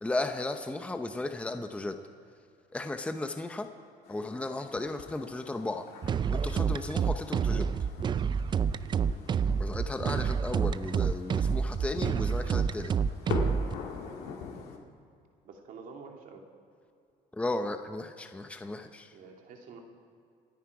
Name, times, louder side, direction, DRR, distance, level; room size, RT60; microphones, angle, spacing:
voice 1, 0.0-2.0 2.7-3.7 4.1-5.8 6.3-7.6 9.6-12.9 17.3-19.1, left 2 dB, 10° left, 7 dB, 0.7 m, -35 dB
sound 1, 4.0-14.8, left 5 dB, 80° left, 2.1 m, -43 dB
sound 2, 6.0-13.7, right 6 dB, 30° right, 0.4 m, -28 dB
voice 2, 8.8-9.2 15.4-16.4 19.1-19.8, right 5 dB, 60° right, 2 dB, 2.5 m, -48 dB
28.0 x 10.0 x 4.8 m, 2.5 s
cardioid pair, 125°, 16 cm